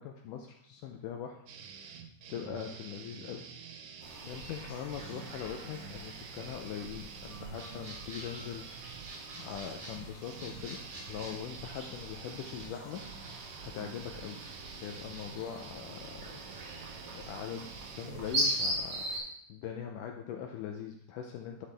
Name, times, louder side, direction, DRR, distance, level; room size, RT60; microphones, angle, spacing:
voice 1, 0.0-1.4 2.3-3.5 4.2-8.6 9.3-13.0 13.6-14.4 14.8-16.3 17.1-19.1 19.5-21.7, left 8 dB, 80° left, 3 dB, 2.1 m, -41 dB
sound 1, 1.5-18.6, right 6 dB, 80° right, 2.5 m, -48 dB
sound 2, 4.0-19.2, right 1 dB, 45° right, 3.2 m, -41 dB
11.0 x 5.8 x 3.4 m, 0.70 s
omnidirectional pair, 3.8 m